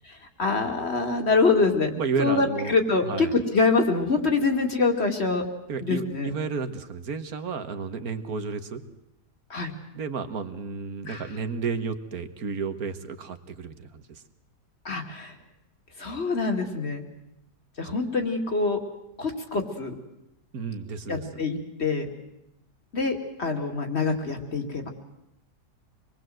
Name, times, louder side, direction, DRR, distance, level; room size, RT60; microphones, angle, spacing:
voice 1, 0.0-1.9 2.2-5.4 5.8-6.3 9.5-9.7 11.1-11.3 14.8-15.3 16.0-17.0 17.8-18.8 19.2-19.9 21.1-22.1 22.9-24.9, left 4 dB, 40° left, 4 dB, 2.6 m, -25 dB
voice 2, 2.0-2.7 3.0-3.3 5.7-8.8 9.9-14.2 20.5-21.5, right 5 dB, 65° right, 9 dB, 1.8 m, -32 dB
26.0 x 21.0 x 7.8 m, 0.84 s
omnidirectional pair, 1.7 m